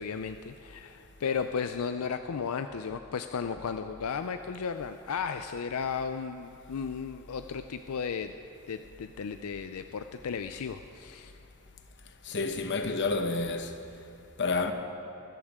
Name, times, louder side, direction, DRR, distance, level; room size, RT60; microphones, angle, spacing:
voice 1, 0.0-8.3 8.7-11.3, left 6 dB, 85° left, 0.5 m, -34 dB
voice 2, 12.2-13.7 14.4-14.7, left 3 dB, 55° left, 1.1 m, -29 dB
24.0 x 13.5 x 3.7 m
head